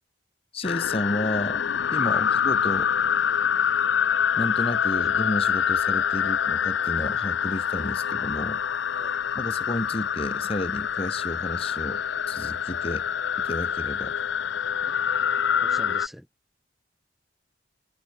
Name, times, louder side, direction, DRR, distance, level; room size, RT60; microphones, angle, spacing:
voice 1, 0.5-1.6 1.9-2.9 4.4-8.6 9.3-13.1 13.4-14.2, left 1 dB, 30° left, 1.3 m, -32 dB
sound 1, 0.6-16.1, left 8 dB, 75° left, 0.5 m, -26 dB
voice 2, 15.6-16.3, equal, ahead, 3.2 m, -44 dB
head